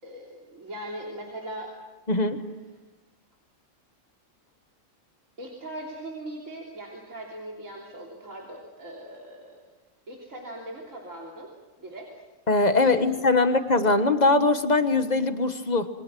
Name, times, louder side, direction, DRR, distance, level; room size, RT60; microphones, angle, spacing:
voice 1, 0.0-1.7 5.4-9.6 10.1-11.5 11.8-12.1 12.8-13.1 13.3-13.5, right 1 dB, 75° right, -2 dB, 3.7 m, -40 dB
voice 2, 2.1-2.4 12.5-15.9, left 3 dB, 35° left, 9 dB, 1.4 m, -21 dB
28.0 x 23.5 x 6.2 m, 1.1 s
omnidirectional pair, 1.3 m